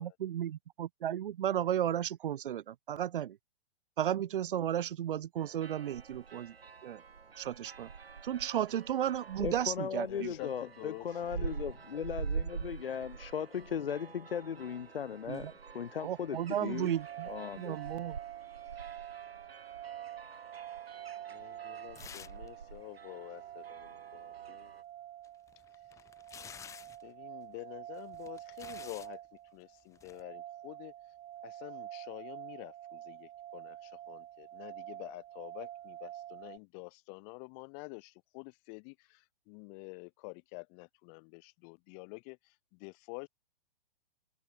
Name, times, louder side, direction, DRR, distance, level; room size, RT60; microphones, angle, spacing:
voice 1, 0.0-3.4 4.0-6.5 6.8-7.0 7.4-7.9 8.2-10.3 15.3-15.5 16.0-17.3 17.6-18.2, right 10 dB, 65° right, 0.8 m, -34 dB
sound 1, 5.4-24.8, right 5 dB, 85° right, 1.9 m, -45 dB
voice 2, 9.4-16.9 17.3-17.8, left 8 dB, 70° left, 1.6 m, -37 dB
voice 3, 10.1-11.5 21.3-24.7 27.0-29.2 29.5-30.9 31.4-43.3, left 40 dB or more, 35° left, 5.2 m, -48 dB
sound 2, 16.9-36.6, right 12 dB, 25° right, 4.7 m, -47 dB
sound 3, 22.0-22.5 22.8-22.9 25.2-27.1 28.0-29.1 29.9-30.2, left 8 dB, 10° left, 0.6 m, -50 dB
open air
figure-of-eight pair, 120°, 29 cm